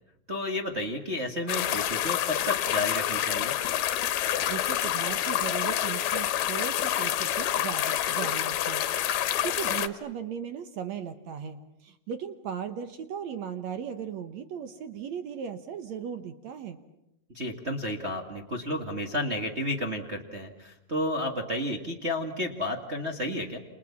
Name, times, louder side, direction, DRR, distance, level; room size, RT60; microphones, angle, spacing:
voice 1, 0.3-3.5 9.3-9.4 17.3-23.6, left 1 dB, 35° right, 2 dB, 1.1 m, -32 dB
sound 1, 1.5-9.9, left 12 dB, 75° left, 3.0 m, -28 dB
voice 2, 4.5-16.8, right 8 dB, 65° right, 10 dB, 1.8 m, -37 dB
29.0 x 28.5 x 7.2 m, 0.90 s
omnidirectional pair, 4.5 m